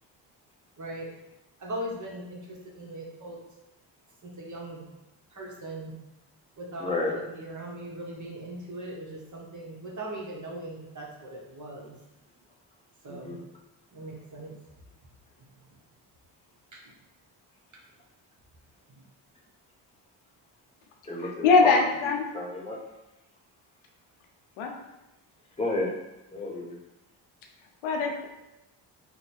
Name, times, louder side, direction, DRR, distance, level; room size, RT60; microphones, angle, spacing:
voice 1, 0.8-1.1 1.6-3.4 4.2-4.8 5.3-6.0 6.6-12.0 13.0-13.4 13.9-14.6 15.4-15.8 16.7-16.9 18.9-19.0, right 1 dB, 35° right, -3 dB, 1.1 m, -40 dB
voice 2, 6.8-7.2 13.2-13.4 21.1-21.8 22.3-22.8 25.6-25.9 26.3-26.7, left 2 dB, 10° left, -3 dB, 1.1 m, -31 dB
voice 3, 21.4-22.3 24.6-24.7 27.8-28.3, left 4 dB, 90° left, 1 dB, 0.7 m, -22 dB
3.0 x 2.3 x 4.2 m, 0.95 s
cardioid pair, 70°, 48 cm